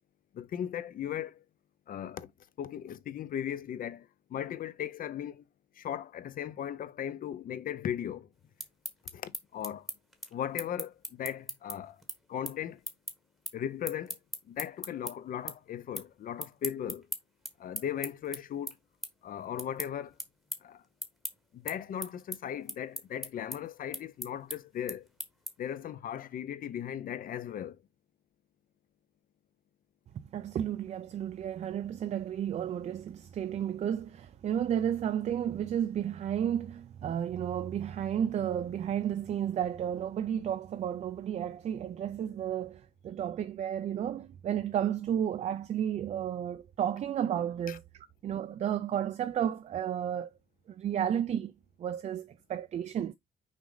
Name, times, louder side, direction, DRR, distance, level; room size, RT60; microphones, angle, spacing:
voice 1, 0.3-1.4 1.9-2.3 2.6-5.4 5.8-8.3 9.1-9.9 10.3-12.0 12.3-12.8 13.5-14.2 14.5-17.1 17.6-18.7 19.2-20.1 20.6-20.8 21.5-25.1 25.6-27.8 47.7-47.8, left 9 dB, 45° left, 0.8 m, -37 dB
sound 1, 8.4-15.1 15.5-16.1 16.4-25.8, equal, ahead, 1.1 m, -40 dB
voice 2, 30.1-47.8 48.2-50.3 50.7-51.5 51.8-53.1, right 9 dB, 35° right, 0.5 m, -32 dB
6.2 x 5.0 x 3.9 m
cardioid pair, 175°, 19 cm